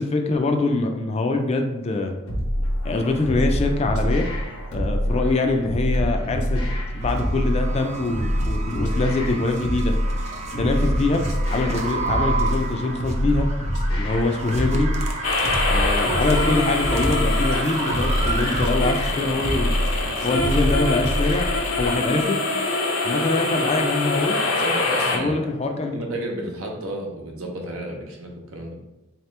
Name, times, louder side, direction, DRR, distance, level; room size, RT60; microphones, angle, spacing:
voice 1, 0.0-2.1 2.8-4.2 4.7-6.6 6.9-9.9 10.6-11.2 11.5-13.5 14.0-14.9 15.7-19.7 20.2-21.5 21.8-22.5 23.0-24.4 25.1-26.0, left 3 dB, 30° left, 4 dB, 0.3 m, -24 dB
sound 1, 2.3-21.9, equal, 90° left, 1.0 m, -25 dB
sound 2, 7.0-20.8, right 3 dB, 30° right, 0.5 m, -32 dB
sound 3, 15.2-25.2, left 2 dB, 75° left, 0.6 m, -25 dB
voice 2, 24.6-25.3 25.9-28.7, right 1 dB, 80° right, 0 dB, 0.8 m, -31 dB
4.0 x 2.9 x 3.2 m, 0.95 s
head